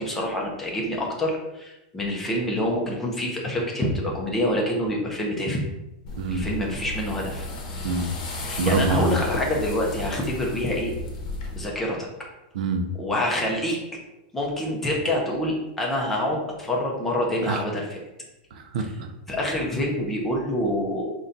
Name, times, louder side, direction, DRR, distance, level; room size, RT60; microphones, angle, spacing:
voice 1, 0.0-5.6 6.3-7.5 8.4-10.9 11.6-12.1 13.0-13.8 14.3-18.0 19.3-21.1, left 1 dB, 5° left, -2 dB, 0.5 m, -26 dB
sound 1, 6.1-11.6, left 2 dB, 45° left, 0.8 m, -33 dB
voice 2, 7.8-8.2 8.6-9.2 12.5-12.9 17.4-17.6 18.5-19.1, right 3 dB, 55° right, 6 dB, 0.5 m, -25 dB
3.9 x 2.2 x 3.8 m, 0.96 s
supercardioid pair, 180°, 5 cm